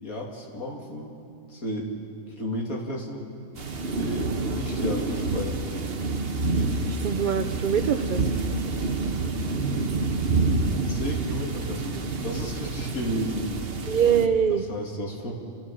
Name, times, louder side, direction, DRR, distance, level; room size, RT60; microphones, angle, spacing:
voice 1, 0.0-1.1 1.5-1.9 2.4-3.3 4.0-5.7 10.0-13.7 14.5-15.3, equal, 65° left, -1 dB, 3.2 m, -33 dB
sound 1, 3.5-14.3, right 3 dB, 40° right, 1.2 m, -28 dB
voice 2, 6.8-8.3 13.9-14.6, right 8 dB, 60° right, 8 dB, 0.5 m, -23 dB
29.5 x 14.5 x 7.5 m, 2.4 s
omnidirectional pair, 1.6 m